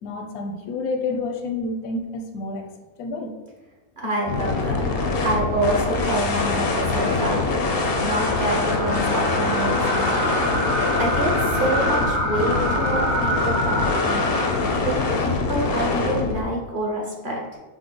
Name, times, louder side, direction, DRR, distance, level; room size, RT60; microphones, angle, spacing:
voice 1, 0.0-2.7 3.0-3.4, left 3 dB, 85° left, 5 dB, 1.1 m, -29 dB
voice 2, 4.0-4.8 5.2-7.4 8.0-10.4 11.0-14.2 14.7-17.6, right 1 dB, 40° right, -3 dB, 0.9 m, -27 dB
sound 1, 4.3-16.4, left 3 dB, 65° left, 0.6 m, -24 dB
Bowed string instrument, 4.7-9.7, right 3 dB, 60° right, 1.5 m, -42 dB
sound 2, 7.7-15.0, equal, 85° right, 1.5 m, -27 dB
6.0 x 2.0 x 3.7 m, 1.2 s
omnidirectional pair, 1.6 m